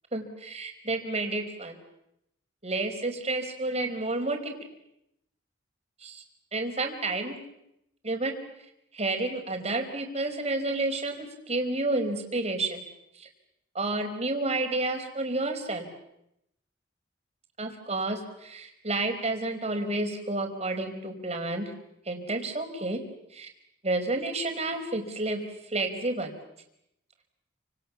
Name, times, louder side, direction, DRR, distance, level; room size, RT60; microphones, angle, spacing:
voice 1, 0.1-1.8 2.6-4.5 6.0-6.2 6.5-7.4 8.0-8.3 8.9-12.8 13.1-13.3 13.7-15.9 17.6-21.7 22.0-23.0 23.3-23.5 23.8-25.4 25.7-26.3, right 2 dB, 35° right, 4 dB, 4.9 m, -30 dB
29.5 x 26.5 x 7.2 m, 0.82 s
head